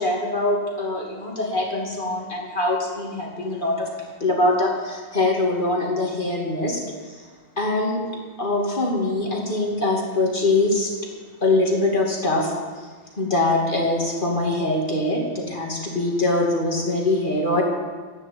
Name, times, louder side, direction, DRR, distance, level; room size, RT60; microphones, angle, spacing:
voice 1, 0.0-3.9 4.2-7.3 7.6-8.0 8.4-10.9 11.4-12.5 13.2-17.6, left 2 dB, 25° left, -2 dB, 2.7 m, -23 dB
11.0 x 10.0 x 8.6 m, 1.5 s
omnidirectional pair, 2.0 m